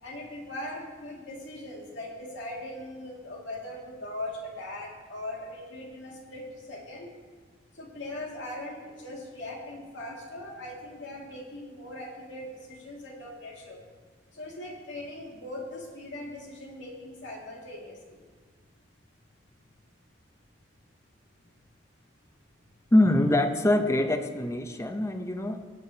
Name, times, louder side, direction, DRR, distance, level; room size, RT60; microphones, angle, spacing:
voice 1, 0.0-7.1 7.7-13.8 14.3-18.2, left 1 dB, 90° left, -1 dB, 2.2 m, -40 dB
voice 2, 22.9-25.7, left 1 dB, 15° left, 7 dB, 0.6 m, -24 dB
18.0 x 8.4 x 2.8 m, 1.5 s
head